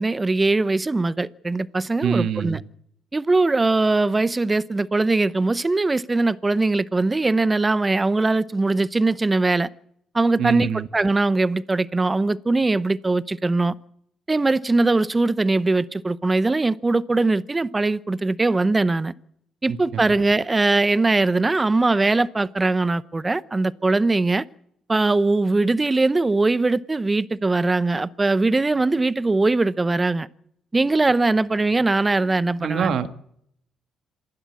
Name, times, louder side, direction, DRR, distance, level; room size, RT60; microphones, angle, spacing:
voice 1, 0.0-2.6 3.1-9.7 10.1-13.7 14.3-19.1 19.6-24.4 24.9-30.3 30.7-33.0, right 3 dB, 20° right, 0.9 m, -21 dB
voice 2, 2.0-2.6 10.4-10.9 32.6-33.1, right 7 dB, 70° right, 1.7 m, -23 dB
26.5 x 12.0 x 8.5 m
cardioid pair, 90°, 0 cm